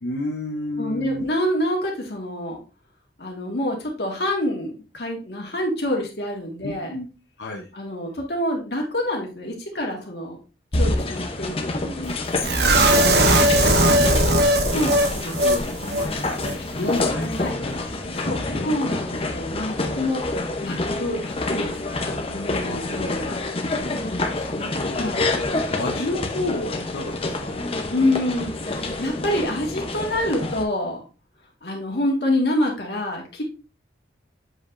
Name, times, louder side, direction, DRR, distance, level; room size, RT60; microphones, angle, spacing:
voice 1, 0.0-1.2 6.6-7.1 7.4-7.7 10.8-11.1 11.7-12.2 12.5-15.0 15.4-18.7 20.7-21.0 22.6-22.9 23.8-25.3 25.7-27.6, left 2 dB, 85° left, 0 dB, 0.8 m, -32 dB
voice 2, 0.8-2.6 3.2-6.9 7.7-10.4 10.7-12.1 14.7-15.4 17.4-17.6 18.2-21.7 22.3-23.4 24.9-25.2 27.9-31.0 31.6-33.4, left 1 dB, 65° left, 0 dB, 1.8 m, -27 dB
sound 1, 10.7-30.6, left 2 dB, 30° left, 0.7 m, -27 dB
sound 2, 12.4-15.6 15.9-16.1 16.4-16.5, right 1 dB, 65° right, 0.9 m, -18 dB
7.7 x 5.0 x 2.5 m, 0.33 s
head